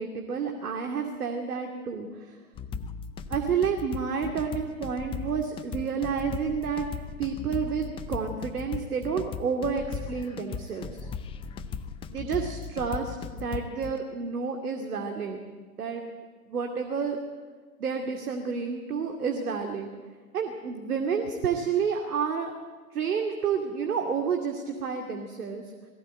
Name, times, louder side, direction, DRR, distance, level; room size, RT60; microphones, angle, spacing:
voice 1, 0.0-2.4 3.3-6.8 7.2-11.1 12.1-15.4 15.8-16.0 16.5-17.2 17.8-19.9 20.3-22.5 22.9-25.6, right 6 dB, 75° right, 3 dB, 2.5 m, -30 dB
sound 1, 2.6-14.0, left 6 dB, 10° left, 0.5 m, -37 dB
20.5 x 16.0 x 9.1 m, 1.4 s
hypercardioid pair, 120°, 45 cm